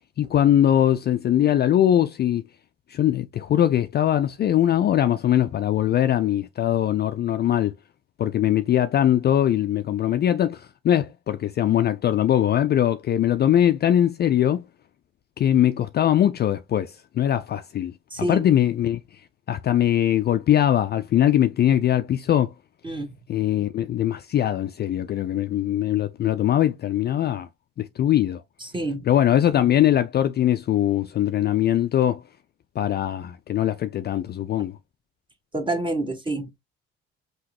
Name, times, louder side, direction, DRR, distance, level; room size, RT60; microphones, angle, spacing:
voice 1, 0.2-2.4 2.9-7.7 8.2-14.6 15.4-19.2 19.5-22.5 23.3-27.5 27.8-28.4 29.0-32.2 32.8-34.8, left 11 dB, 35° left, 0.4 m, -21 dB
voice 2, 18.1-18.4 22.8-23.1 28.6-29.0 35.5-36.5, right 1 dB, 15° right, 1.4 m, -27 dB
5.6 x 2.8 x 2.9 m
figure-of-eight pair, 45°, 30 cm